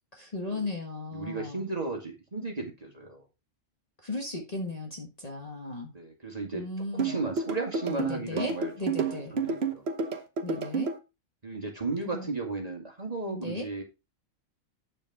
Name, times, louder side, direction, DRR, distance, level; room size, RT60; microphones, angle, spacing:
voice 1, 0.1-1.6 4.0-5.9 6.5-7.2 7.9-9.3 10.4-10.9 12.1-12.3 13.3-13.7, left 2 dB, 30° left, 1.4 m, -36 dB
voice 2, 1.1-3.2 5.9-6.7 6.9-8.7 9.3-9.8 11.4-13.8, right 3 dB, 30° right, 2.1 m, -34 dB
sound 1, 7.0-11.0, right 5 dB, 55° right, 1.3 m, -30 dB
8.5 x 7.1 x 3.5 m
omnidirectional pair, 1.4 m